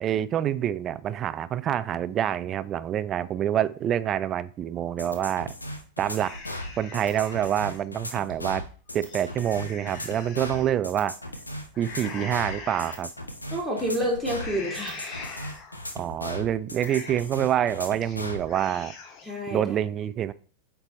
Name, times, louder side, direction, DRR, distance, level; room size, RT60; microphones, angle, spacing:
voice 1, 0.0-5.5 6.0-6.4 6.8-8.7 8.9-11.2 11.8-13.1 15.9-18.9 19.5-20.3, right 10 dB, 30° right, 16 dB, 0.3 m, -27 dB
sound 1, 5.0-18.4, left 1 dB, 80° left, 0.8 m, -37 dB
sound 2, 6.2-7.8 8.3-8.4 8.9-10.7 11.7-13.0 13.5-13.8 14.3-15.9 16.2-16.3 16.7-17.4 17.8-18.2 18.4-19.3, left 4 dB, 35° left, 0.9 m, -42 dB
voice 2, 13.5-15.3 19.2-19.6, equal, ahead, -3 dB, 2.2 m, -29 dB
8.1 x 3.4 x 4.1 m, 0.43 s
figure-of-eight pair, 90°, 0 cm